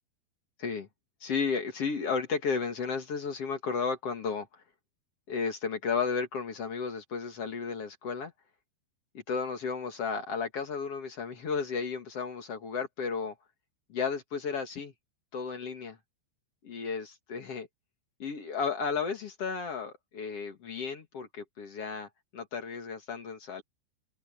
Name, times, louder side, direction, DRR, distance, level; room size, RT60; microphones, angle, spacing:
voice 1, 1.2-4.6 5.3-8.3 9.3-13.3 13.9-14.9 15.3-16.0 16.6-17.7 18.2-23.6, left 5 dB, 55° left, 1.8 m, -33 dB
open air
omnidirectional pair, 5.4 m